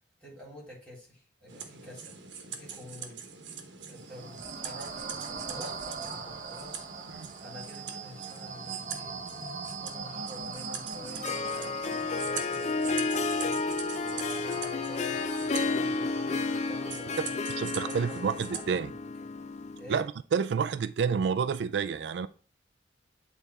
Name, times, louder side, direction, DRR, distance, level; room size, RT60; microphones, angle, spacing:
voice 1, 0.2-3.2 3.9-6.9 7.4-9.1 9.8-17.3 17.8-18.2 18.5-19.3 19.8-20.0, left 1 dB, 5° left, 3.7 m, -47 dB
sound 1, 1.5-18.7, right 6 dB, 90° right, 1.1 m, -43 dB
sound 2, 4.0-17.4, right 4 dB, 45° right, 0.8 m, -42 dB
Harp, 11.0-19.9, left 4 dB, 40° left, 0.4 m, -32 dB
voice 2, 17.6-18.9 19.9-20.1 20.3-22.3, right 6 dB, 70° right, 0.3 m, -29 dB
8.4 x 4.2 x 3.4 m
head